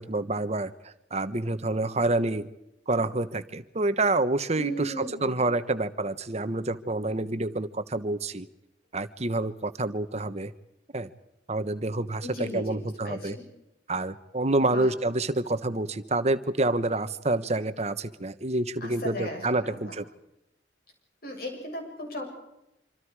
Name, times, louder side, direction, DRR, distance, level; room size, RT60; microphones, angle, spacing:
voice 1, 0.0-2.5 2.9-8.5 8.9-10.5 10.9-11.1 11.5-12.3 12.5-13.4 13.9-20.0, right 2 dB, 35° right, 12 dB, 1.2 m, -28 dB
voice 2, 4.6-5.5 12.2-12.8 13.0-13.4 14.7-14.9 18.8-19.9 21.2-22.3, equal, 55° left, 2 dB, 7.2 m, -36 dB
26.5 x 26.5 x 4.9 m, 0.89 s
head